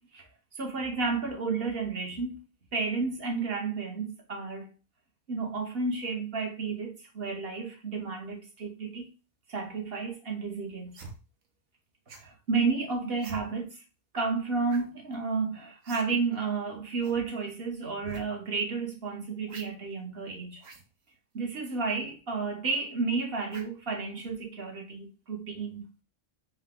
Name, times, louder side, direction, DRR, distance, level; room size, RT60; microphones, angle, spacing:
voice 1, 0.5-2.4 2.7-4.7 5.3-9.1 9.5-11.0 12.2-13.8 14.1-20.6 21.3-26.0, right 4 dB, 55° right, 1.2 m, -32 dB
sound 1, 10.9-11.2 12.1-12.3 13.2-13.4 14.7-14.9 15.1-15.2 15.8-16.1 16.3-16.4 17.0-17.2 18.0-18.2 19.5-19.7 20.6-20.8 21.6-21.8 23.5-23.8 24.2-24.4, right 4 dB, 85° right, 1.2 m, -46 dB
5.0 x 2.3 x 3.7 m
omnidirectional pair, 1.3 m